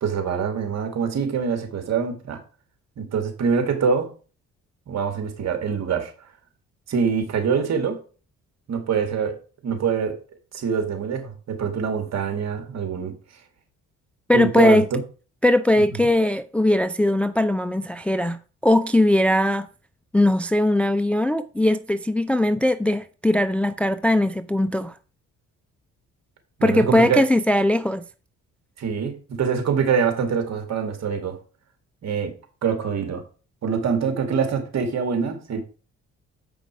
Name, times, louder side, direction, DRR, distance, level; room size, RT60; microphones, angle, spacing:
voice 1, 0.0-2.4 3.0-4.1 4.9-6.1 6.9-8.0 8.7-9.4 9.6-10.2 10.5-13.1 14.3-15.0 15.9-16.1 26.6-27.3 28.8-31.4 32.0-32.3 32.6-33.2 33.6-35.6, right 6 dB, 60° right, 2.2 m, -24 dB
voice 2, 14.3-14.8 15.4-19.7 20.1-24.9 26.6-28.0, left 1 dB, 5° left, 0.4 m, -20 dB
7.8 x 5.1 x 4.7 m
cardioid pair, 90°, 30 cm